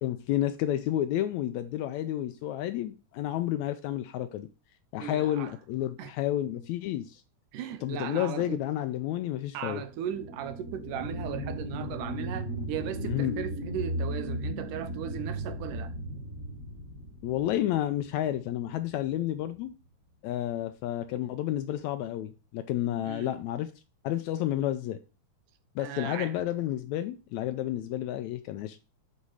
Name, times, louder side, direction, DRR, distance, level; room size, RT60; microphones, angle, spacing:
voice 1, 0.0-4.5 4.9-7.2 7.8-9.8 13.0-13.3 17.2-19.7 20.2-23.7 24.0-25.0 25.7-28.8, left 12 dB, 80° left, 1.7 m, -30 dB
voice 2, 5.0-5.5 6.0-6.1 7.5-8.6 9.5-15.9 23.0-23.4 25.8-26.3, right 10 dB, 85° right, 2.4 m, -37 dB
sound 1, 9.9-19.0 19.4-19.5, equal, 35° right, 1.4 m, -36 dB
8.2 x 4.3 x 4.8 m
omnidirectional pair, 3.6 m